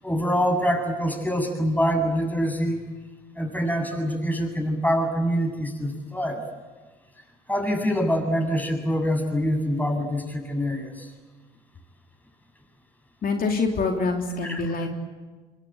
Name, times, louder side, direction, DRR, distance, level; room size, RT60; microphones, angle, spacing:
voice 1, 0.0-2.9 3.3-6.4 7.5-11.1 14.5-14.6, equal, 10° left, 3 dB, 7.7 m, -25 dB
voice 2, 13.2-14.9, left 3 dB, 45° left, 2 dB, 3.3 m, -25 dB
26.0 x 23.0 x 8.2 m, 1.3 s
hypercardioid pair, 50°, 21 cm